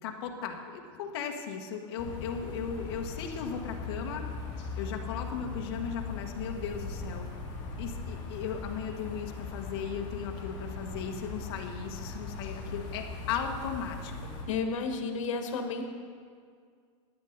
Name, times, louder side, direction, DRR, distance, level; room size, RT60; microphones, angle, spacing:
voice 1, 0.0-4.2 4.8-7.3 7.8-14.3, left 7 dB, 50° left, 3 dB, 1.2 m, -37 dB
sound 1, 2.0-14.4, left 3 dB, 35° left, 2.3 m, -39 dB
voice 2, 14.4-15.9, left 4 dB, 85° left, 5 dB, 1.3 m, -32 dB
13.0 x 9.8 x 3.9 m, 2.1 s
supercardioid pair, 175°, 16 cm